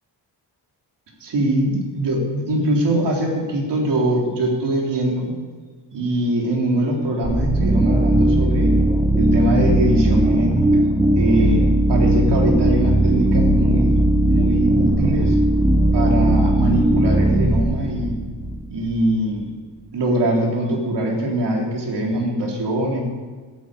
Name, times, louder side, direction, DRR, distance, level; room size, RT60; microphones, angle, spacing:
voice 1, 1.2-5.3 5.9-8.7 9.2-10.9 11.2-14.0 14.2-15.4 15.9-18.1 18.7-19.5 19.9-23.0, right 1 dB, 70° right, -1 dB, 3.7 m, -22 dB
sound 1, 7.2-19.0, right 1 dB, 10° right, 1.1 m, -18 dB
12.5 x 9.2 x 8.2 m, 1.5 s
cardioid pair, 100°, 43 cm